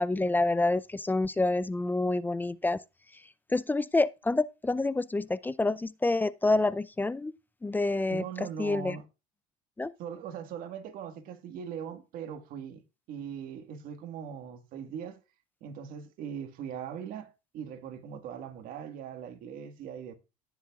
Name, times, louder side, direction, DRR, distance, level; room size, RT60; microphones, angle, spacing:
voice 1, 0.0-2.8 3.5-7.3 7.6-9.0 9.8-9.9, left 2 dB, 10° left, 0.4 m, -28 dB
voice 2, 8.1-9.0 10.0-12.8 13.1-15.2 15.6-20.1, right 8 dB, 60° right, 1.7 m, -40 dB
17.5 x 7.2 x 2.4 m
supercardioid pair, 90°, 16 cm